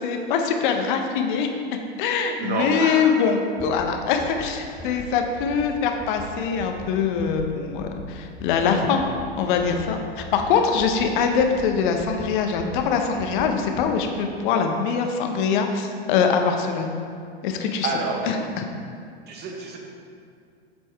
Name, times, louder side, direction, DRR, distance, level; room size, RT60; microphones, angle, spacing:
voice 1, 0.0-1.5 2.0-9.0 9.4-16.9 17.4-17.9 18.2-18.6, left 6 dB, 55° left, 4 dB, 0.8 m, -23 dB
voice 2, 2.4-3.2 4.8-5.0 17.8-18.2 19.3-19.8, right 3 dB, 30° right, 0 dB, 1.1 m, -28 dB
sound 1, 3.6-3.8 4.2-4.5 4.8-5.0 5.4-5.7 6.0-6.2 6.6-6.8 7.2-7.5 7.8-8.0 8.4-8.6 9.0-9.2 9.6-9.8 10.2-10.4 10.8-11.1 11.4-11.7 12.0-12.2 12.6-12.9 13.2-13.5 13.8-13.9, left 1 dB, 10° left, 0.7 m, -40 dB
7.8 x 4.3 x 3.4 m, 2.3 s
hypercardioid pair, 100°, 31 cm